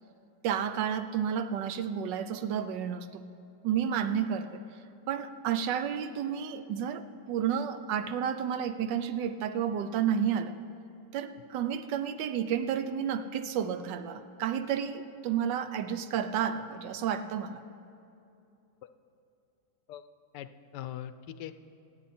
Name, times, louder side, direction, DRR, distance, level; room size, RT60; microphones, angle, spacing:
voice 1, 0.4-3.3 3.6-4.6 5.1-10.6 11.1-17.6, right 8 dB, 90° right, 11 dB, 1.4 m, -31 dB
voice 2, 20.3-21.5, left 11 dB, 80° left, 12 dB, 1.2 m, -41 dB
26.0 x 8.8 x 4.3 m, 2.7 s
omnidirectional pair, 1.9 m